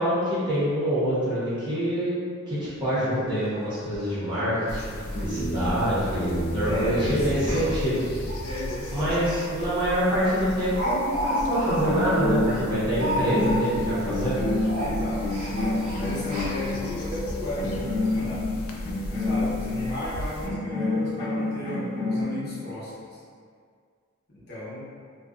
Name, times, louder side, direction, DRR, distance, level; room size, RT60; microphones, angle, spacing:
voice 1, 0.0-2.2 2.5-7.9 8.9-14.4, equal, 20° right, -12 dB, 0.9 m, -26 dB
Speech, 3.1-3.2 3.5-3.6 3.9-4.1 4.5-4.7 5.0-5.2 5.5-5.6 6.4-6.6 7.4-9.4 9.8-9.9 10.3-13.8 14.1-14.3 14.6-16.9 17.5-17.6 17.9-18.0, equal, 70° right, 0.8 m, -32 dB
sound 1, 4.7-20.5, equal, 75° left, 0.3 m, -36 dB
sound 2, 5.2-7.9 11.4-11.6 11.9-17.0 17.6-19.8 20.4-22.2, left 2 dB, 20° left, 0.9 m, -29 dB
voice 2, 6.6-7.6 8.4-9.2 12.7-13.3 14.7-18.5 19.1-23.2 24.3-24.8, left 1 dB, 50° left, -10 dB, 0.9 m, -34 dB
2.5 x 2.2 x 2.4 m, 2.1 s
head